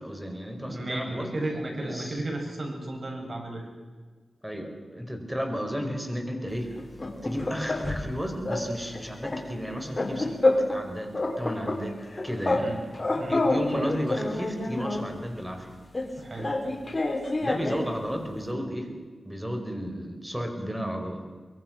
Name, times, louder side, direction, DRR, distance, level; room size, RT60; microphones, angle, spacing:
voice 1, 0.0-1.4 1.8-2.2 4.4-6.7 7.2-10.4 10.7-12.7 13.3-15.8 17.4-19.0 19.2-21.2, equal, 10° right, 5 dB, 4.8 m, -33 dB
voice 2, 0.7-3.7 12.6-12.8 13.1-13.4 16.2-16.5, right 1 dB, 50° right, 1 dB, 7.9 m, -34 dB
sound 1, 6.8-8.1 8.5-8.7 8.9-10.8 11.1-12.7 12.9-15.1 15.9-17.9, left 2 dB, 30° left, 3.8 m, -28 dB
24.0 x 22.5 x 6.1 m, 1.4 s
cardioid pair, 65°, 0 cm